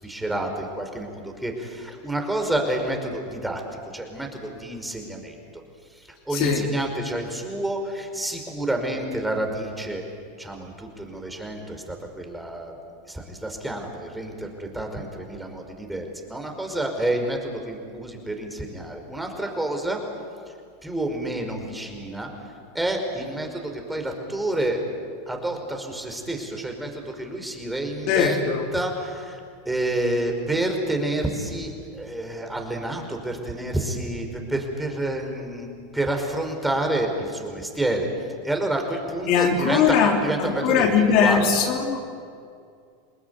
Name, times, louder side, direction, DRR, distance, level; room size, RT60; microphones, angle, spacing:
voice 1, 0.0-3.6 3.9-5.4 5.9-10.0 10.4-12.8 13.0-20.0 20.8-22.3 22.7-24.8 25.3-29.4 29.7-35.7 35.9-38.1 38.4-41.5, right 1 dB, 5° right, 3 dB, 5.2 m, -29 dB
voice 2, 6.3-6.6 28.1-28.6 39.3-42.0, left 6 dB, 55° left, 3 dB, 3.3 m, -20 dB
28.5 x 20.0 x 9.7 m, 2.3 s
hypercardioid pair, 100°, 0 cm